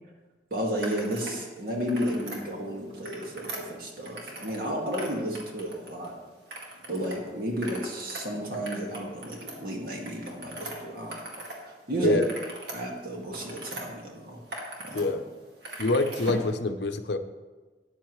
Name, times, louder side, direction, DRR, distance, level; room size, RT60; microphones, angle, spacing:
voice 1, 0.5-6.2 6.9-11.4 11.9-12.2 12.7-14.4 14.8-15.2, equal, 55° right, 0 dB, 2.0 m, -32 dB
sound 1, 0.8-1.4 1.7-2.4 2.9-4.6 4.9-6.1 6.5-7.2 7.5-11.6 11.9-13.8 14.3-15.0 15.3-16.5, right 1 dB, 75° right, 2.1 m, -40 dB
voice 2, 15.8-17.2, left 2 dB, 75° left, 8 dB, 0.7 m, -25 dB
13.0 x 9.8 x 3.2 m, 1.3 s
head